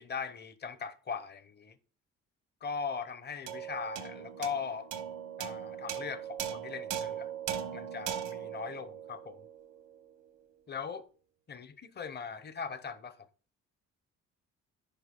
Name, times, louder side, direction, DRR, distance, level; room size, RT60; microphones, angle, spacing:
voice 1, 0.0-1.8 2.6-4.9 5.4-7.3 7.7-9.5 10.7-11.1 11.5-13.3, left 6 dB, 35° left, 0.8 m, -39 dB
sound 1, 3.5-10.1, right 9 dB, 85° right, 1.0 m, -39 dB
6.8 x 5.0 x 3.7 m
cardioid pair, 90°, 30 cm